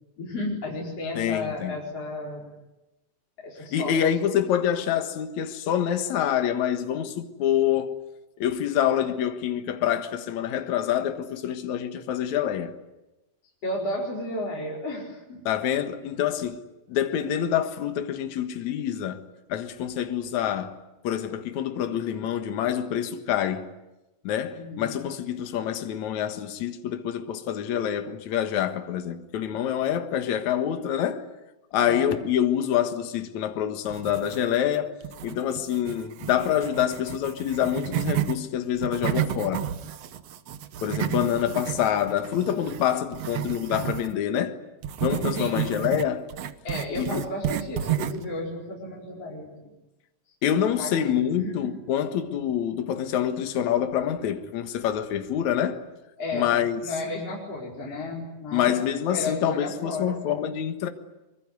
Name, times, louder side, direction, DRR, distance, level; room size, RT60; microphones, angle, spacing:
voice 1, 0.2-2.5 3.4-4.0 13.6-15.4 24.5-25.0 31.7-32.1 45.3-45.8 46.6-49.7 50.8-51.7 56.2-58.8 59.1-60.2, left 2 dB, 45° left, 5.6 m, -33 dB
voice 2, 1.2-1.8 3.7-7.9 8.4-12.7 15.5-16.6 16.9-19.2 19.5-20.8 21.0-23.7 24.2-31.2 31.7-34.9 35.2-39.7 40.8-44.6 45.0-46.3 46.9-47.2 50.4-55.8 56.3-56.8 58.5-60.9, left 10 dB, 65° left, 2.7 m, -26 dB
sound 1, 33.9-34.7 35.0-38.4 38.7-44.1 44.8-48.3, right 11 dB, 60° right, 1.8 m, -31 dB
24.5 x 23.5 x 9.7 m
omnidirectional pair, 3.8 m